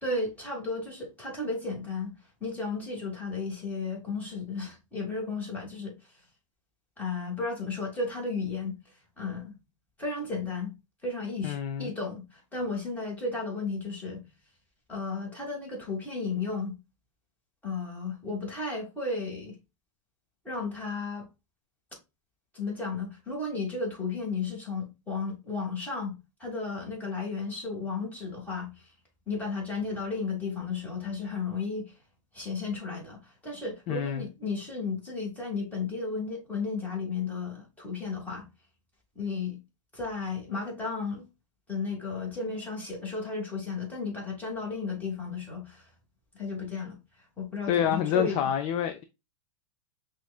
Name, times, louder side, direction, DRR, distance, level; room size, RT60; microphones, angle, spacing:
voice 1, 0.0-2.1 2.4-5.9 7.0-8.8 9.2-9.6 10.0-10.7 11.0-14.2 14.9-16.7 17.6-19.6 20.4-21.3 22.5-28.7 29.3-31.9 32.3-38.5 39.2-39.6 39.9-41.2 41.7-45.9 46.3-47.0 47.4-48.4, left 4 dB, 10° left, 1.8 m, -34 dB
voice 2, 11.4-11.9 33.9-34.2 47.7-49.0, left 9 dB, 35° left, 0.4 m, -27 dB
5.8 x 2.5 x 2.3 m
hypercardioid pair, 125°, 17 cm